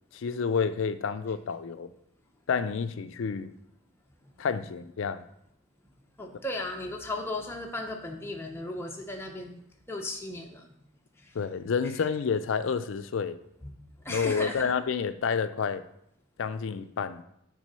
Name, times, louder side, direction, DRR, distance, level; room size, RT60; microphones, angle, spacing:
voice 1, 0.1-1.9 2.5-3.5 4.4-5.3 11.3-13.4 14.1-15.8 16.4-17.2, left 6 dB, 60° left, 0.4 m, -29 dB
voice 2, 6.2-9.6 9.9-10.7 11.2-11.3 13.6-13.7 14.0-14.7, left 2 dB, 10° left, 0.6 m, -36 dB
6.1 x 3.7 x 5.5 m
head